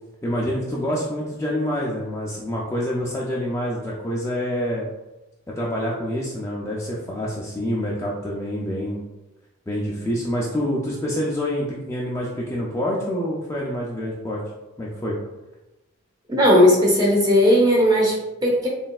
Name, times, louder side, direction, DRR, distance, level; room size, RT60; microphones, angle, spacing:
voice 1, 0.2-4.8 5.6-9.0 9.7-14.4 14.8-15.2, equal, 15° left, -4 dB, 0.4 m, -27 dB
voice 2, 16.3-18.7, equal, 20° right, -3 dB, 0.8 m, -17 dB
4.1 x 3.2 x 2.4 m, 0.99 s
head